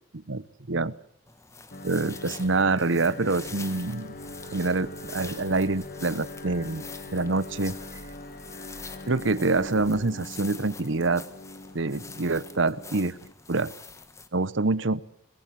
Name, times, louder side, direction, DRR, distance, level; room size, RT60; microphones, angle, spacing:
voice 1, 0.3-0.9 1.8-4.1 4.5-6.9 7.1-7.8 9.1-11.2 11.7-13.1 13.5-13.7 14.3-15.0, right 3 dB, 75° right, 18 dB, 1.0 m, -26 dB
sound 1, 1.3-14.3, left 4 dB, 15° left, 1.5 m, -45 dB
sound 2, 1.7-13.3, left 2 dB, 50° left, 1.9 m, -42 dB
sound 3, 3.8-10.1, equal, 5° right, 2.5 m, -53 dB
23.5 x 21.0 x 7.7 m, 0.64 s
head